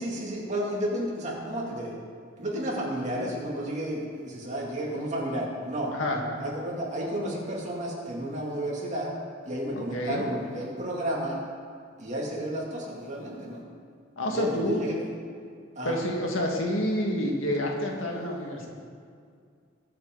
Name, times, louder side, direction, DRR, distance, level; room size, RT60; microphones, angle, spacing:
voice 1, 0.0-1.9 2.4-5.9 6.4-9.1 9.4-11.4 12.0-13.6 14.3-15.0 15.8-16.0, right 1 dB, 35° right, -3 dB, 2.6 m, -32 dB
voice 2, 9.7-10.2 14.2-14.8 15.8-18.7, left 1 dB, 85° left, 0 dB, 1.9 m, -28 dB
21.0 x 7.6 x 4.0 m, 2.2 s
head